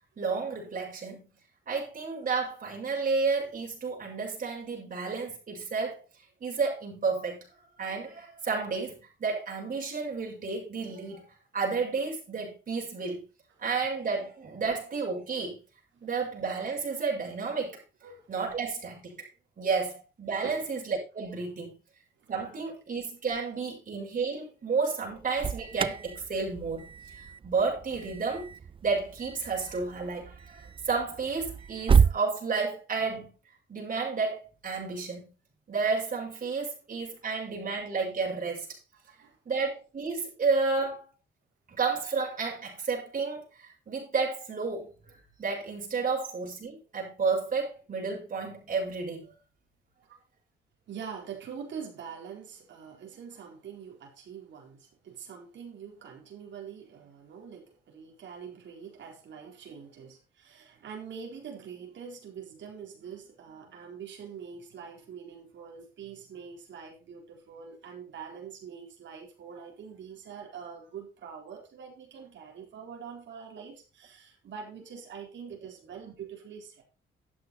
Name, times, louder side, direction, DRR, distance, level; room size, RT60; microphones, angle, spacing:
voice 1, 0.2-1.3 1.7-6.0 6.4-7.4 7.8-11.3 11.5-13.3 13.6-15.6 16.0-17.8 18.3-19.3 19.6-21.7 22.3-28.5 28.8-33.3 33.7-35.3 35.7-38.7 39.4-41.0 41.8-49.3, right 4 dB, 40° right, 6.5 m, -31 dB
Alarm, 25.1-32.2, right 6 dB, 25° right, 0.4 m, -30 dB
voice 2, 39.1-39.4 50.1-50.2 50.9-76.8, right 7 dB, 65° right, 4.2 m, -44 dB
12.0 x 8.3 x 4.3 m
cardioid pair, 90°, 20 cm